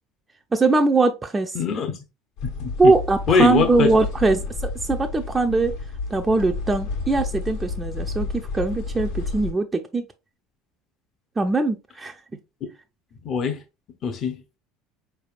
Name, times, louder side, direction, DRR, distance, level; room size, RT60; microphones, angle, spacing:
voice 1, 0.5-1.6 2.8-5.7 6.1-10.1 11.4-12.2, right 3 dB, 20° right, 0.4 m, -21 dB
voice 2, 1.5-1.9 2.4-2.7 3.3-3.9 13.2-13.6 14.0-14.4, left 5 dB, 45° left, 0.7 m, -22 dB
sound 1, 2.4-9.5, left 4 dB, 75° left, 1.3 m, -31 dB
4.3 x 3.3 x 2.4 m
hypercardioid pair, 70°, 0 cm